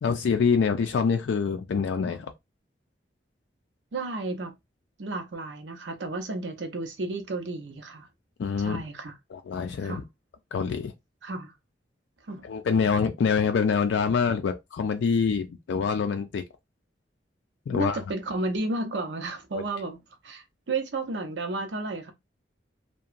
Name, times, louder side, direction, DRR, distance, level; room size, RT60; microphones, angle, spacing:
voice 1, 0.0-2.3 8.4-8.8 9.3-10.0 10.5-10.9 12.4-16.4 17.7-18.0 19.5-19.6, left 6 dB, 85° left, 0.3 m, -25 dB
voice 2, 3.9-4.5 5.0-8.1 8.6-9.1 9.8-10.0 11.2-11.5 12.2-12.5 17.7-22.1, right 2 dB, 85° right, 0.6 m, -32 dB
2.8 x 2.2 x 2.4 m
head